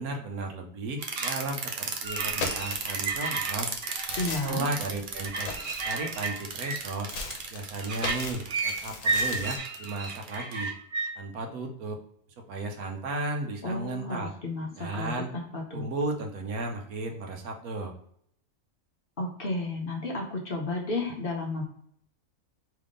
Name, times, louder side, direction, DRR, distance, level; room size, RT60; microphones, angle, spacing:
voice 1, 0.0-3.7 4.4-5.6 5.8-7.1 7.5-10.7 11.2-12.0 12.5-14.3 14.8-15.3 15.7-17.9, right 2 dB, 85° right, 3 dB, 1.2 m, -34 dB
sound 1, 1.0-11.1, right 4 dB, 55° right, 0.6 m, -32 dB
sound 2, 2.1-3.2 3.7-6.5 7.1-9.6, left 4 dB, 70° left, 1.1 m, -38 dB
voice 2, 4.2-4.7 13.6-15.9 19.2-21.6, left 2 dB, 50° left, 0 dB, 0.8 m, -32 dB
3.5 x 3.3 x 3.7 m, 0.67 s
omnidirectional pair, 1.5 m